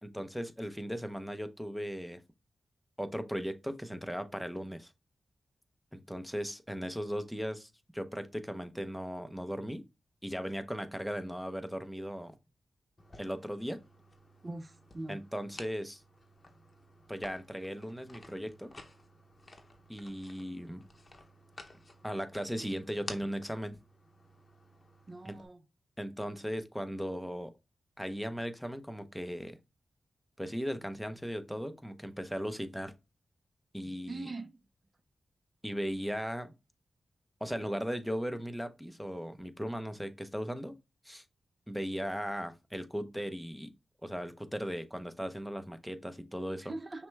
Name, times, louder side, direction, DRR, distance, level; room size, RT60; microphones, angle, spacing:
voice 1, 0.0-2.2 3.0-4.9 5.9-9.8 10.2-12.3 13.2-13.8 15.1-16.0 17.1-18.7 19.9-20.8 22.0-23.8 25.2-25.4 26.0-27.5 28.0-29.6 30.4-32.9 33.7-34.3 35.6-36.5 37.4-40.8 41.0-41.2 41.7-43.7 44.0-46.7, equal, ahead, 0.7 m, -37 dB
sound 1, 13.0-25.5, left 2 dB, 40° left, 0.8 m, -53 dB
voice 2, 14.4-15.2 25.1-25.6 33.8-34.5 46.6-47.1, right 2 dB, 40° right, 0.6 m, -42 dB
5.8 x 2.3 x 3.2 m
cardioid pair, 45°, 0 cm